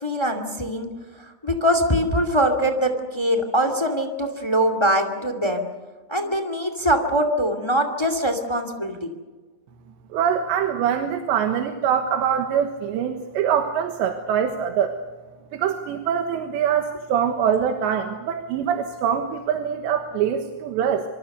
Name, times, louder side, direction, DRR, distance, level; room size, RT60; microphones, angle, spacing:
voice 1, 0.0-0.9 1.4-5.6 6.1-9.1, equal, 30° left, 8 dB, 0.4 m, -22 dB
voice 2, 10.1-15.0 15.5-21.1, right 8 dB, 85° right, 5 dB, 3.6 m, -24 dB
26.0 x 26.0 x 6.6 m, 1.3 s
omnidirectional pair, 5.0 m